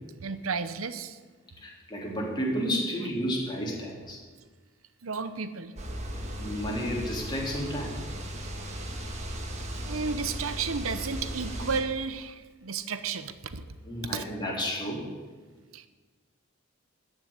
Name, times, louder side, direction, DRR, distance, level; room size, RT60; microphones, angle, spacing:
voice 1, 0.2-1.2 5.0-5.7 9.8-13.8 14.0-14.2 15.7-15.9, right 5 dB, 85° right, 12 dB, 0.9 m, -33 dB
voice 2, 1.6-4.2 6.4-8.0 13.8-15.1, equal, 20° left, -3 dB, 3.3 m, -31 dB
sound 1, 5.8-11.8, equal, 35° right, 1.6 m, -36 dB
14.0 x 6.4 x 9.7 m, 1.4 s
head